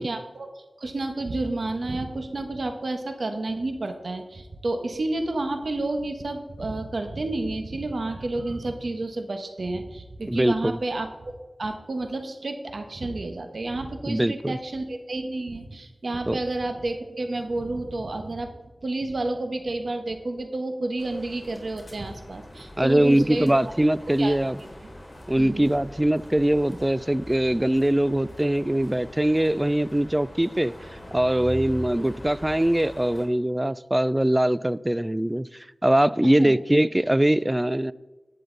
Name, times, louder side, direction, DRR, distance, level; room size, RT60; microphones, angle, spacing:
voice 1, 0.0-18.5 18.8-23.5 24.2-24.5 25.4-25.7 36.2-36.6, right 2 dB, 75° right, 1.2 m, -30 dB
voice 2, 10.3-10.8 14.1-14.6 16.3-16.4 22.8-24.6 25.3-30.7 31.1-35.5 35.8-37.9, right 1 dB, 20° right, 0.4 m, -22 dB
sound 1, 21.0-33.3, equal, 30° left, 3.5 m, -42 dB
11.5 x 9.3 x 4.0 m
wide cardioid pair, 45°, 0 cm